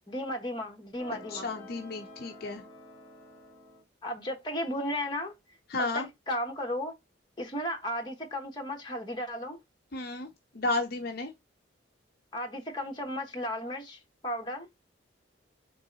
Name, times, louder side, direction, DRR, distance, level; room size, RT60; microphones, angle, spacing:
voice 1, 0.1-1.5 4.0-5.3 5.8-6.9 7.4-9.6 12.3-14.7, equal, 25° left, 1.0 m, -34 dB
sound 1, 1.0-3.8, left 1 dB, 10° right, 2.5 m, -49 dB
voice 2, 1.3-2.6 5.7-6.1 9.9-10.3 10.5-11.3, left 2 dB, 50° left, 0.5 m, -32 dB
3.9 x 3.0 x 3.8 m
head